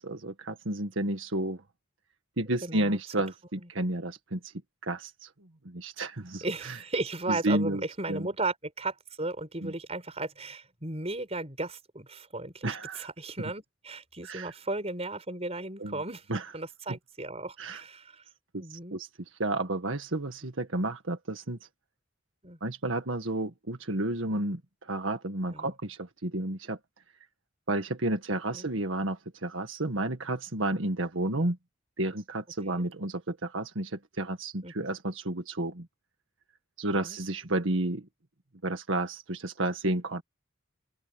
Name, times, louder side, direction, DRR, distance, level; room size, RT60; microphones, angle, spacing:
voice 1, 0.0-1.6 2.4-4.4 4.8-5.3 5.7-6.7 7.3-7.8 8.1-8.3 9.6-9.7 12.6-13.1 14.2-14.5 15.8-16.0 16.3-16.4 16.9-17.0 17.6-17.8 18.5-19.1 19.4-21.6 22.6-26.8 27.7-31.6 32.0-35.9 36.8-38.1 38.6-40.2, right 1 dB, 90° right, 1.8 m, -31 dB
voice 2, 2.6-3.0 3.6-3.7 6.4-16.2 16.5-18.2 18.6-19.0 22.4-22.6 25.5-25.7 28.5-28.7 31.3-31.5 32.7-32.8 34.6-34.9 36.9-37.2, right 2 dB, 35° right, 5.6 m, -35 dB
open air
head